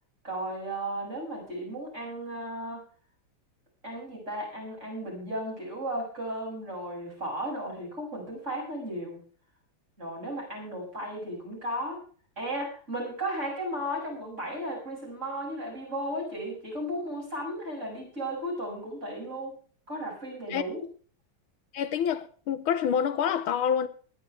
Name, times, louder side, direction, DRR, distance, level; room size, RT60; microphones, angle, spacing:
voice 1, 0.2-2.8 3.8-9.2 10.0-12.0 12.4-19.6 19.9-20.8, right 1 dB, 30° right, 7.7 m, -35 dB
voice 2, 21.7-23.9, left 8 dB, 80° left, 1.7 m, -27 dB
20.5 x 11.5 x 3.4 m
omnidirectional pair, 2.3 m